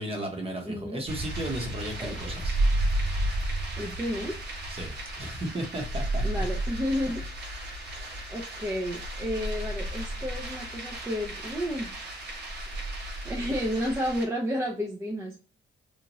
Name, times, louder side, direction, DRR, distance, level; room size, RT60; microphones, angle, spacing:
voice 1, 0.0-2.6 4.7-6.4 7.9-8.3, right 1 dB, 30° right, 2 dB, 1.0 m, -35 dB
voice 2, 0.6-1.0 2.0-2.2 3.8-4.4 6.2-7.2 8.3-11.9 13.2-15.4, equal, 15° right, -3 dB, 0.6 m, -31 dB
sound 1, 1.0-14.2, right 1 dB, 55° right, 1.1 m, -32 dB
3.0 x 2.4 x 2.6 m, 0.38 s
cardioid pair, 90°, 20 cm